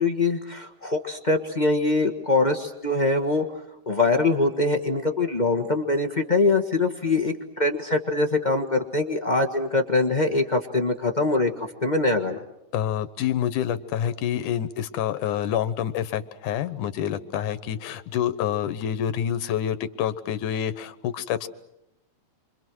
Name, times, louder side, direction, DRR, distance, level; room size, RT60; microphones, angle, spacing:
voice 1, 0.0-3.5 3.9-12.4, left 3 dB, 55° left, 3 dB, 0.4 m, -23 dB
voice 2, 12.7-21.5, left 10 dB, 80° left, 13 dB, 2.6 m, -27 dB
30.0 x 25.5 x 6.3 m, 0.86 s
omnidirectional pair, 3.5 m